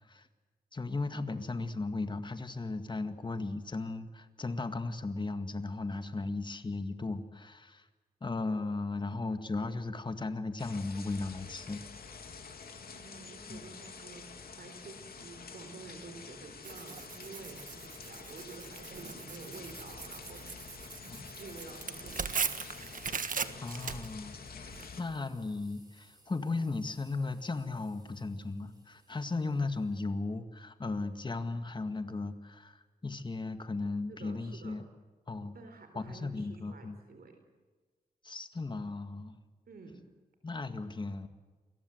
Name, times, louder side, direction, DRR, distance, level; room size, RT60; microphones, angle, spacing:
voice 1, 0.7-7.9 8.2-11.8 13.5-13.6 21.1-21.2 23.6-34.8 35.3-35.5 36.0-37.0 38.2-39.3 40.4-41.3, left 3 dB, 30° left, 9 dB, 1.9 m, -36 dB
sound 1, 10.6-25.0, left 5 dB, 75° left, 3.3 m, -48 dB
voice 2, 12.9-14.3 14.6-22.4 34.1-34.8 35.5-37.4 39.7-40.0, right 4 dB, 75° right, 6 dB, 4.0 m, -50 dB
Tearing, 16.6-24.9, right 6 dB, 60° right, 1.4 m, -39 dB
sound 2, 24.8-30.0, right 1 dB, 25° right, 7.1 m, -65 dB
28.5 x 22.0 x 7.9 m, 1.4 s
wide cardioid pair, 145°, 16 cm